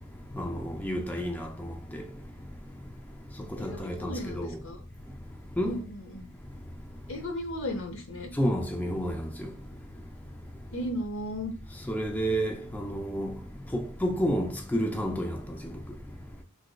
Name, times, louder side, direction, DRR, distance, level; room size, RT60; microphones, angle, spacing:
voice 1, 0.3-2.0 3.6-4.6 5.6-5.8 8.4-9.5 11.9-13.3 13.7-15.4, equal, 10° left, 0.3 m, -30 dB
voice 2, 3.6-4.8 5.6-6.3 7.1-8.3 10.7-11.5, left 1 dB, 65° left, 0.8 m, -35 dB
3.5 x 3.0 x 2.2 m
head